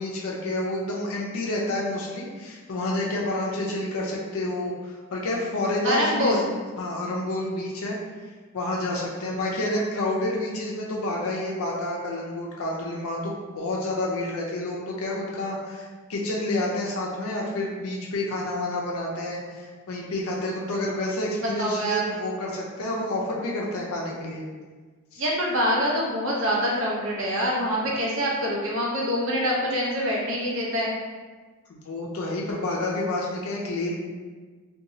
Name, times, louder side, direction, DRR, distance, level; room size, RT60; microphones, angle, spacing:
voice 1, 0.0-6.4 6.8-8.0 8.5-24.4 25.1-25.2 31.7-34.0, left 1 dB, 65° left, -3 dB, 0.4 m, -29 dB
voice 2, 5.8-6.5 21.6-22.0 25.2-30.9, equal, 60° right, -4 dB, 0.7 m, -25 dB
2.8 x 2.2 x 2.6 m, 1.4 s
head